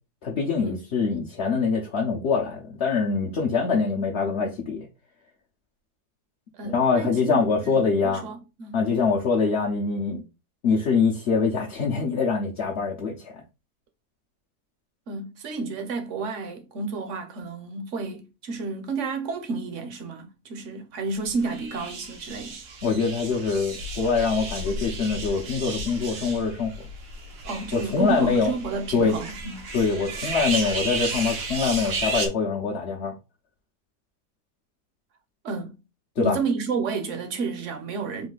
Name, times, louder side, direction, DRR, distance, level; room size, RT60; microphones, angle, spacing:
voice 1, 0.2-4.9 6.6-8.2 8.7-10.2 10.6-13.3 22.8-26.7 27.7-28.5 28.9-29.1 29.7-33.1 36.2-36.4, left 5 dB, 50° left, 0.9 m, -24 dB
voice 2, 6.5-8.8 15.1-22.6 27.4-29.7 35.4-35.8 36.2-38.3, right 4 dB, 55° right, 1.0 m, -31 dB
sound 1, 21.4-32.3, right 3 dB, 80° right, 1.5 m, -33 dB
4.0 x 2.7 x 3.9 m
omnidirectional pair, 1.7 m